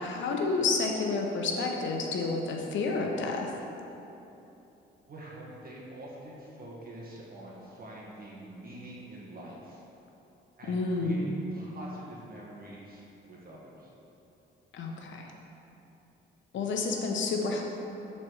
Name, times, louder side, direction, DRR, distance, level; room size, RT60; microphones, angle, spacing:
voice 1, 0.0-3.5 10.7-11.3 14.7-15.3 16.5-17.6, left 3 dB, 70° left, 1 dB, 1.1 m, -30 dB
voice 2, 5.1-9.8 10.6-13.9, right 1 dB, 50° right, -5 dB, 1.8 m, -46 dB
7.6 x 4.5 x 6.5 m, 2.9 s
cardioid pair, 90°, 20 cm